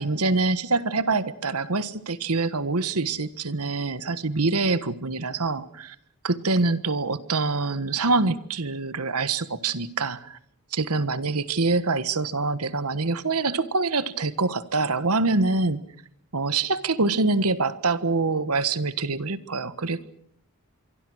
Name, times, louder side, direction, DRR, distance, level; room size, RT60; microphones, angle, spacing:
voice 1, 0.0-5.9 6.2-10.4 10.7-15.8 16.3-20.1, right 3 dB, 80° right, 14 dB, 1.4 m, -25 dB
26.0 x 24.0 x 6.4 m, 0.64 s
head